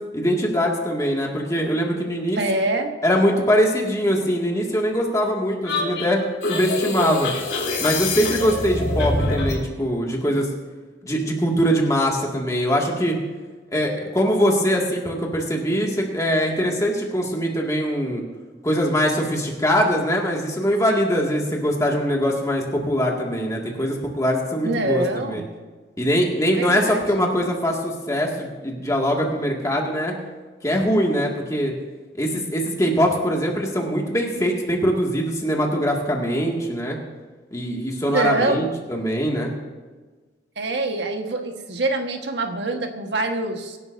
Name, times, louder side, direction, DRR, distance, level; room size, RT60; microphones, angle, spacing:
voice 1, 0.1-2.4 3.0-6.2 6.5-7.3 7.8-10.5 11.0-13.2 13.7-18.2 18.6-25.4 26.0-30.1 30.6-31.7 32.2-37.0 37.5-39.6, equal, 20° left, -1 dB, 2.1 m, -22 dB
voice 2, 2.4-2.9 24.6-25.5 26.5-27.3 38.1-38.8 40.6-43.8, right 2 dB, 75° right, 4 dB, 1.4 m, -25 dB
sound 1, 5.6-9.6, left 2 dB, 70° left, 3.3 m, -25 dB
24.0 x 11.5 x 2.7 m, 1.4 s
head